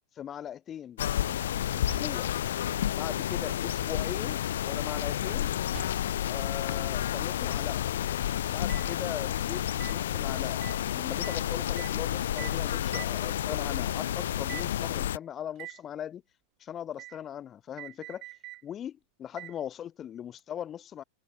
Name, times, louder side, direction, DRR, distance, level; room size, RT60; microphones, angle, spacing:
voice 1, 0.2-1.0 1.7-2.3 2.9-5.5 6.3-7.9 8.4-10.6 10.9-16.2 16.6-18.2 18.6-21.0, left 10 dB, 25° left, 5.8 m, -40 dB
sound 1, 1.0-15.2, left 11 dB, 60° left, 0.4 m, -30 dB
sound 2, 1.3-1.6 1.9-2.3 3.2-3.8 5.3-6.3 8.7-8.9 9.8-10.0 10.6-10.8 11.2-11.4 11.8-12.0 12.4-12.6 12.9-13.2 14.0-14.1 14.5-14.7 15.6-15.8 17.0-17.2 17.8-18.6 19.4-19.6 20.4-20.5, right 19 dB, 40° right, 7.7 m, -44 dB
figure-of-eight pair, 90°, 0 cm